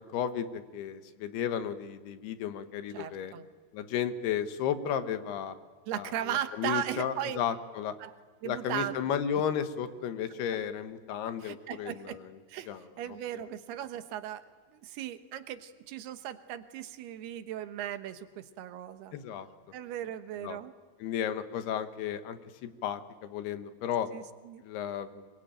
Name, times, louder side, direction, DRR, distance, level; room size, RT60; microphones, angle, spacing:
voice 1, 0.0-3.3 3.7-5.6 5.9-7.9 8.4-12.3 12.7-13.2 19.1-19.5 20.4-20.6 21.0-24.1 24.6-25.3, left 8 dB, 80° left, 9 dB, 3.2 m, -34 dB
voice 2, 2.9-3.5 5.9-7.4 8.0-8.1 8.4-9.4 11.4-12.2 12.5-12.7 13.0-14.4 14.7-19.1 19.7-20.7 24.1-24.6, right 11 dB, 80° right, 10 dB, 3.1 m, -37 dB
25.5 x 22.0 x 8.9 m, 1.5 s
omnidirectional pair, 4.6 m